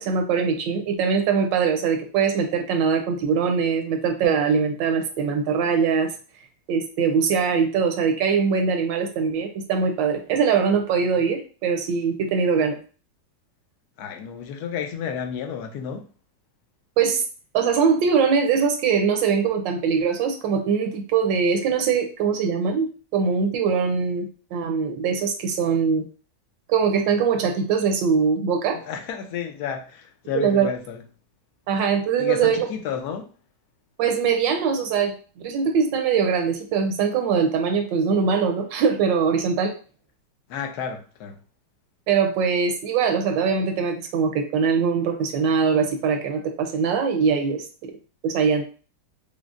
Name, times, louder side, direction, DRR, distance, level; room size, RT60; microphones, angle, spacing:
voice 1, 0.0-6.1 6.7-12.8 17.0-17.2 17.5-22.9 23.1-26.0 26.7-28.8 30.3-30.7 31.7-32.7 34.0-39.7 42.1-47.9 48.2-48.6, right 6 dB, 80° right, 1.3 m, -22 dB
voice 2, 14.0-16.1 28.7-31.0 32.2-33.3 40.5-41.4, left 7 dB, 70° left, 1.0 m, -31 dB
5.0 x 2.0 x 2.4 m
omnidirectional pair, 2.0 m